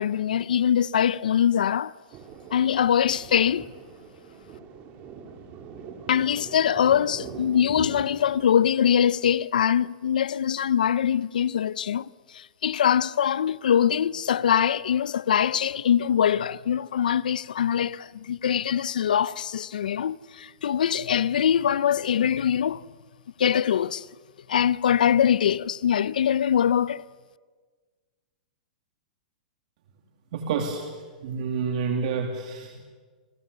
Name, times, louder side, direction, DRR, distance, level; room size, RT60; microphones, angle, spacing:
voice 1, 0.0-1.9 2.5-3.6 6.1-22.8 23.4-24.1 24.5-27.0, left 9 dB, 85° left, 0.7 m, -23 dB
Thunder, 2.1-9.2, right 6 dB, 35° right, 3.7 m, -43 dB
voice 2, 30.3-30.9 31.2-32.8, right 5 dB, 60° right, 2.7 m, -28 dB
29.0 x 20.0 x 6.9 m
hypercardioid pair, 135°, 4 cm